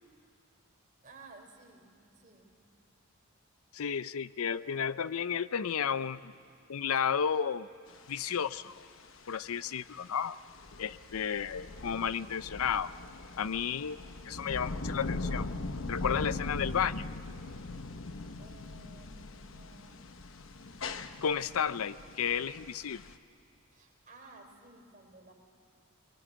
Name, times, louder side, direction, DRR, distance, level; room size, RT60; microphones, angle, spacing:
voice 1, 1.0-2.5 18.4-20.1 20.5-20.9 23.7-25.3, right 3 dB, 40° right, 2 dB, 3.6 m, -55 dB
voice 2, 3.7-6.3 6.7-7.7 8.1-8.8 9.3-10.3 10.8-12.9 13.4-14.0 14.2-15.5 15.8-17.1 21.2-23.0, left 7 dB, 80° left, 15 dB, 0.5 m, -32 dB
sound 1, 7.9-23.2, left 2 dB, 65° left, 1.0 m, -41 dB
24.5 x 21.5 x 9.3 m, 2.5 s
head